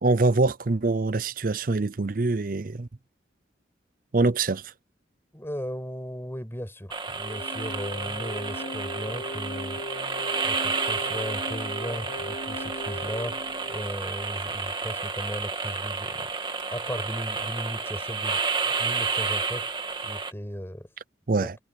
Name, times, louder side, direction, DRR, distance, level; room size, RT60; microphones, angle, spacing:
voice 1, 0.0-2.9 4.1-4.7 21.3-21.6, right 3 dB, 50° right, 0.6 m, -24 dB
voice 2, 5.3-16.3 16.7-19.7 20.0-20.9 21.4-21.5, equal, 15° left, 6.3 m, -36 dB
sound 1, 6.9-20.3, right 4 dB, 25° right, 1.8 m, -31 dB
sound 2, 7.2-14.4, left 1 dB, 50° left, 5.4 m, -39 dB
head